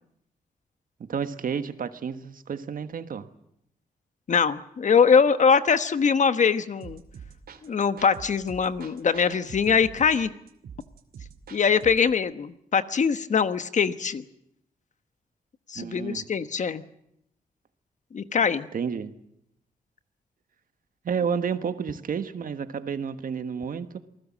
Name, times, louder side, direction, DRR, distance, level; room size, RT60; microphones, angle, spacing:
voice 1, 1.0-3.3 15.7-16.2 18.7-19.2 21.0-24.0, right 6 dB, 65° right, 11 dB, 1.4 m, -31 dB
voice 2, 4.3-7.0 7.6-10.3 11.5-14.2 15.7-16.8 18.1-18.7, left 6 dB, 50° left, 12 dB, 1.2 m, -22 dB
sound 1, 6.8-12.1, right 7 dB, 80° right, 2.4 m, -45 dB
28.0 x 19.5 x 7.4 m, 0.76 s
wide cardioid pair, 145°, 15 cm